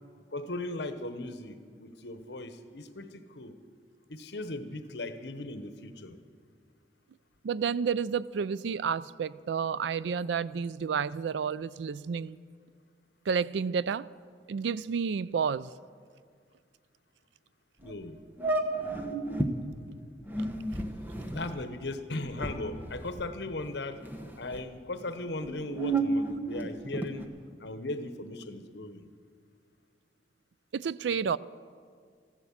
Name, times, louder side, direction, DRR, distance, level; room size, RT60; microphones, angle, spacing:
voice 1, 0.3-3.5 4.1-6.2 17.8-18.2 21.3-24.0 24.4-27.3 27.6-29.1, left 2 dB, 75° left, 10 dB, 1.0 m, -38 dB
voice 2, 7.4-12.4 13.3-14.1 14.5-15.7 20.4-20.5 30.7-31.4, right 6 dB, 85° right, 19 dB, 0.4 m, -30 dB
sound 1, 17.8-17.9 18.4-19.5 20.2-23.7 24.0-24.6 25.3-27.3, right 2 dB, 10° right, 0.9 m, -32 dB
15.0 x 12.0 x 7.2 m, 2.1 s
head